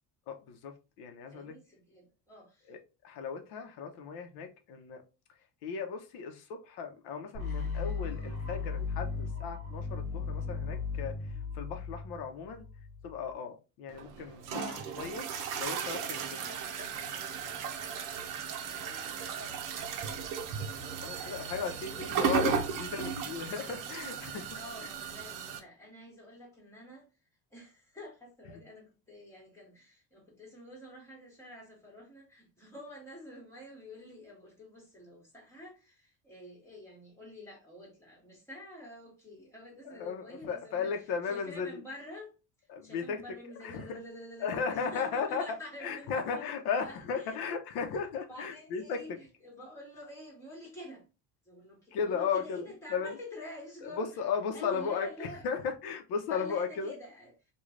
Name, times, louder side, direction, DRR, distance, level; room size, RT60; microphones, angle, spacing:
voice 1, 0.3-1.5 2.7-5.0 5.6-12.7 13.0-15.3 15.5-16.4 21.0-24.6 39.8-41.8 42.7-43.2 43.6-43.9 44.4-49.2 51.9-53.2 53.8-57.0, left 6 dB, 80° left, 0.7 m, -36 dB
voice 2, 1.3-2.7 16.2-20.2 21.1-22.7 24.5-27.1 27.5-40.9 41.3-42.3 42.8-47.4 48.3-51.0 51.4-54.1 54.5-55.4 56.3-57.3, left 1 dB, 5° left, 1.5 m, -49 dB
sound 1, 7.3-13.3, left 5 dB, 40° left, 1.1 m, -36 dB
sound 2, 13.9-25.6, right 7 dB, 55° right, 0.7 m, -35 dB
3.1 x 2.3 x 3.6 m
cardioid pair, 155°, 38 cm